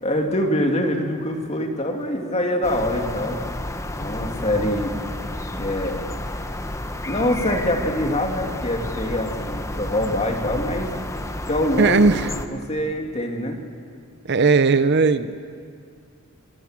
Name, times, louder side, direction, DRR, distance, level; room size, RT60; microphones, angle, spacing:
voice 1, 0.0-3.4 4.0-4.9 5.6-6.0 7.1-10.9 11.5-12.1 12.5-13.6, left 1 dB, 30° left, 3 dB, 2.6 m, -24 dB
sound 1, 2.6-12.5, left 1 dB, 15° left, 1.0 m, -31 dB
voice 2, 11.8-12.3 14.3-15.4, right 4 dB, 50° right, 13 dB, 0.7 m, -17 dB
28.5 x 19.0 x 7.5 m, 2.2 s
head